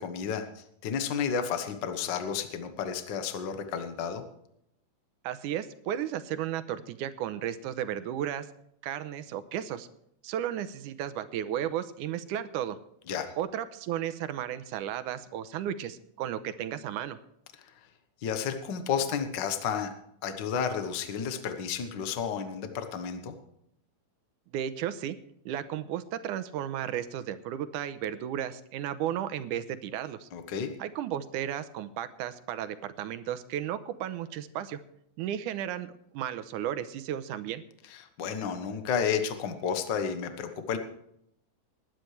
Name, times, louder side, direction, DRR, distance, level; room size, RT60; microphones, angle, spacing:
voice 1, 0.0-4.2 13.1-13.3 18.2-19.9 20.2-23.3 30.3-30.7 38.2-40.8, left 7 dB, 80° left, 8 dB, 1.0 m, -31 dB
voice 2, 5.2-8.5 8.8-9.9 10.2-12.8 13.4-17.2 24.5-25.2 25.5-30.3 30.8-34.8 35.2-37.6, right 10 dB, 80° right, 12 dB, 2.1 m, -34 dB
20.0 x 10.5 x 3.3 m, 0.74 s
omnidirectional pair, 3.8 m